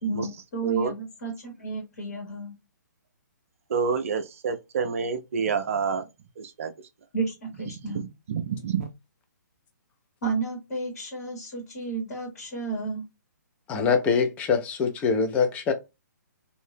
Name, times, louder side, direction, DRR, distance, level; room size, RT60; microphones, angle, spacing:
voice 1, 0.0-2.5 7.1-8.0 10.2-13.0, right 3 dB, 50° left, 1.5 m, -32 dB
voice 2, 3.7-6.0 6.4-6.7 7.7-8.9, right 6 dB, 45° right, 0.6 m, -28 dB
voice 3, 13.7-15.7, left 5 dB, 15° left, 0.5 m, -24 dB
2.7 x 2.7 x 3.3 m
figure-of-eight pair, 130°, 10 cm